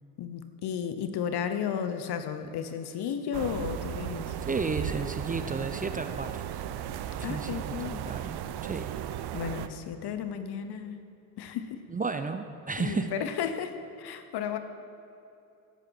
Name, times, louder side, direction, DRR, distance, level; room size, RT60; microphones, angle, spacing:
voice 1, 0.2-4.4 7.2-8.0 9.3-11.0 11.4-11.8 12.8-14.6, left 8 dB, 55° left, 9 dB, 1.2 m, -33 dB
sound 1, 3.3-9.7, right 10 dB, 55° right, 0.8 m, -35 dB
voice 2, 4.5-6.4 7.2-8.9 11.9-13.1, right 4 dB, 15° right, 8 dB, 0.7 m, -33 dB
15.5 x 8.8 x 4.8 m, 2.8 s
hypercardioid pair, 60°, 47 cm